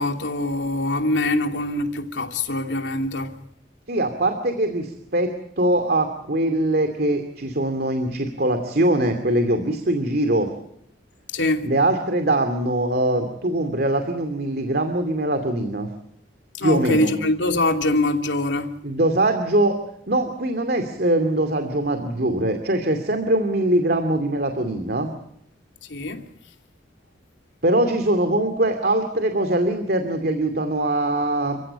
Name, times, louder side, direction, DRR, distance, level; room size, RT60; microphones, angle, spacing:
voice 1, 0.0-3.4 11.3-11.7 16.6-18.8 25.9-26.3, left 2 dB, 90° left, 2.8 m, -23 dB
voice 2, 3.9-10.5 11.6-15.9 16.6-17.1 18.8-19.8 20.1-25.1 27.6-31.6, right 1 dB, 60° right, 2.5 m, -22 dB
30.0 x 16.0 x 8.6 m
head